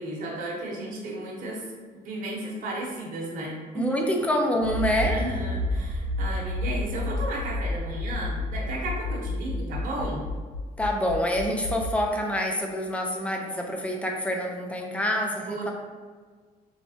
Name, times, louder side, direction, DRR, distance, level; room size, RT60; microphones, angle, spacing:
voice 1, 0.0-4.0 5.0-10.2 15.5-15.7, right 1 dB, 50° right, -4 dB, 0.9 m, -34 dB
voice 2, 3.7-5.2 10.8-15.7, equal, 5° left, 1 dB, 0.5 m, -26 dB
Accelerating revving vroom, 4.6-11.9, left 2 dB, 75° left, 0.5 m, -30 dB
3.4 x 3.2 x 2.7 m, 1.5 s
cardioid pair, 110°, 17 cm